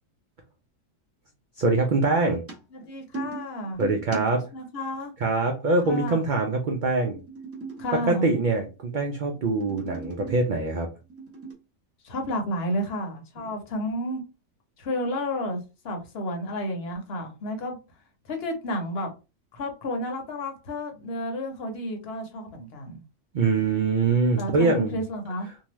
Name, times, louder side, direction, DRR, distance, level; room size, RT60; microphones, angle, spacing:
voice 1, 1.6-2.4 3.8-4.4 5.2-7.2 8.1-10.9 23.3-25.0, right 3 dB, 80° right, 0.4 m, -24 dB
sound 1, 2.3-4.6 6.9-8.7 9.2-10.5 11.0-11.5, right 4 dB, 15° right, 0.6 m, -39 dB
voice 2, 2.7-3.8 4.1-5.1 5.8-6.2 7.8-8.3 12.0-14.2 14.8-15.6 15.8-17.8 18.2-19.1 19.5-23.0 24.4-25.5, left 1 dB, 55° left, 0.9 m, -31 dB
2.7 x 2.2 x 3.0 m
omnidirectional pair, 1.4 m